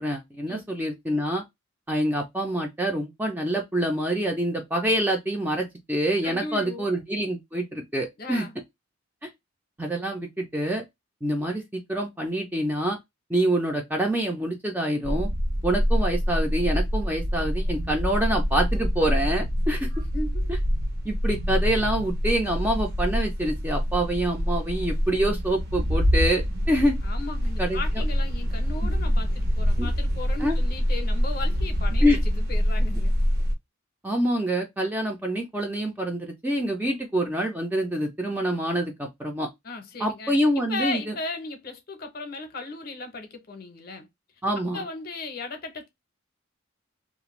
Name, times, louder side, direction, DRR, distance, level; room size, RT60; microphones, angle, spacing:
voice 1, 0.0-1.4 1.9-8.5 9.8-10.8 11.2-13.0 13.3-15.3 15.6-19.9 21.0-27.0 27.6-27.8 28.8-28.9 29.8-29.9 30.4-30.6 32.0-32.2 34.0-39.5 40.0-41.1 44.4-44.8, right 1 dB, 10° right, 0.5 m, -26 dB
voice 2, 6.2-6.9 8.2-8.6 20.1-20.6 27.0-33.1 39.6-44.1 44.5-45.9, left 3 dB, 45° left, 0.7 m, -36 dB
sound 1, 15.0-33.5, equal, 50° right, 0.7 m, -25 dB
2.5 x 2.2 x 3.0 m
head